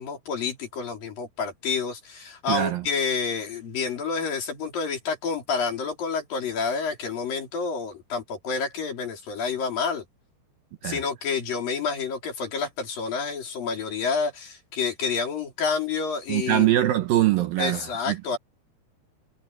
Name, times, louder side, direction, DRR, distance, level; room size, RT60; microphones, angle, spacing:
voice 1, 0.0-10.0 10.8-16.7 17.6-18.4, left 5 dB, 60° left, 5.7 m, -29 dB
voice 2, 2.5-2.8 10.8-11.0 16.3-18.4, right 13 dB, 70° right, 2.5 m, -23 dB
omnidirectional pair, 4.7 m